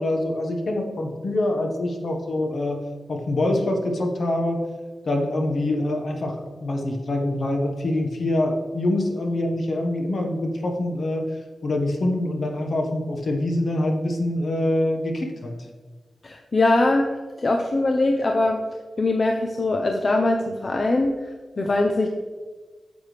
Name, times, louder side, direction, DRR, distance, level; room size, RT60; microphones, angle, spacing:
voice 1, 0.0-2.8 3.1-4.6 5.0-11.3 11.6-15.5, left 1 dB, 55° left, 2 dB, 1.4 m, -25 dB
voice 2, 16.2-17.1 17.4-18.6 19.0-21.3 21.6-22.1, left 2 dB, 35° left, 3 dB, 0.6 m, -21 dB
9.4 x 7.3 x 3.4 m, 1.4 s
wide cardioid pair, 155°, 0 cm